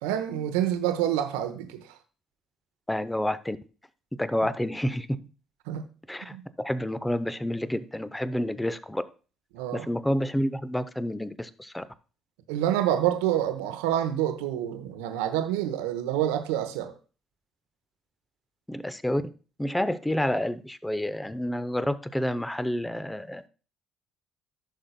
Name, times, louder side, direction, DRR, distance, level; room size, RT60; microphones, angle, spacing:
voice 1, 0.0-1.8 5.7-5.8 6.3-6.4 9.5-9.9 12.5-16.9, right 11 dB, 75° right, 0.9 m, -27 dB
voice 2, 2.9-3.6 4.2-5.2 6.1-9.0 9.7-11.8 18.7-19.2 19.6-23.4, left 1 dB, 10° left, 0.7 m, -29 dB
14.5 x 6.4 x 2.2 m
figure-of-eight pair, 50°, 0 cm